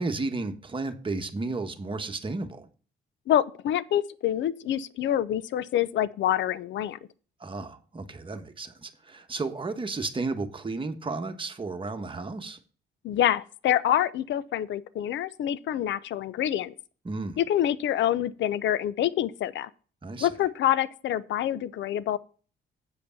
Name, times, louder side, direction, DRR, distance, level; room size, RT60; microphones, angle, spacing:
voice 1, 0.0-2.7 7.4-12.6 17.0-17.4 20.0-20.3, right 3 dB, 25° right, 1.2 m, -33 dB
voice 2, 3.3-7.0 13.0-16.7 17.4-19.7 20.2-22.2, left 11 dB, 70° left, 0.6 m, -26 dB
8.4 x 5.1 x 6.9 m
cardioid pair, 90°, 20 cm